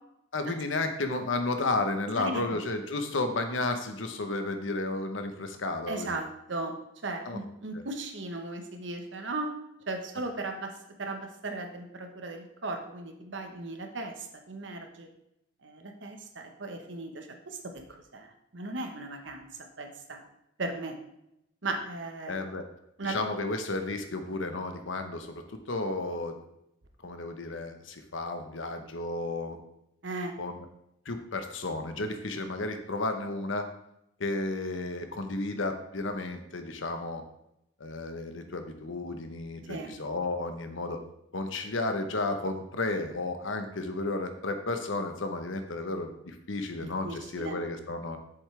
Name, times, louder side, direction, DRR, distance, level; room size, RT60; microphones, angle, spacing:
voice 1, 0.3-6.2 7.2-7.4 22.3-22.6 23.0-25.4 25.7-26.4 27.0-29.6 30.4-30.6 31.1-33.7 34.2-37.2 37.8-41.0 41.3-48.2, left 2 dB, 85° left, 7 dB, 1.0 m, -32 dB
voice 2, 2.2-2.6 5.9-6.8 7.0-9.5 9.9-15.1 15.6-19.5 19.8-20.2 20.6-21.0 21.6-22.5 23.0-23.1 30.0-30.3 39.7-39.9 47.0-47.5, right 2 dB, 70° right, 4 dB, 1.1 m, -37 dB
8.0 x 7.2 x 3.3 m, 0.81 s
head